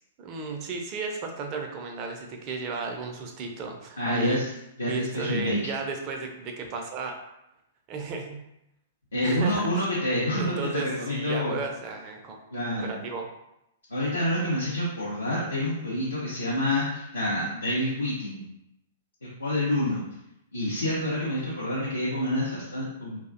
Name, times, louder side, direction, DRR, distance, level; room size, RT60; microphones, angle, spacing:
voice 1, 0.2-4.4 4.9-7.2 7.9-8.4 9.2-9.7 10.4-12.4 12.8-13.3, right 4 dB, 35° right, 3 dB, 0.4 m, -34 dB
voice 2, 4.0-4.5 4.8-5.6 9.1-11.6 12.5-12.9 13.9-18.4 19.2-20.0 20.5-23.2, left 1 dB, 80° left, -7 dB, 0.5 m, -27 dB
2.4 x 2.1 x 2.4 m, 0.84 s
figure-of-eight pair, 105°, 0 cm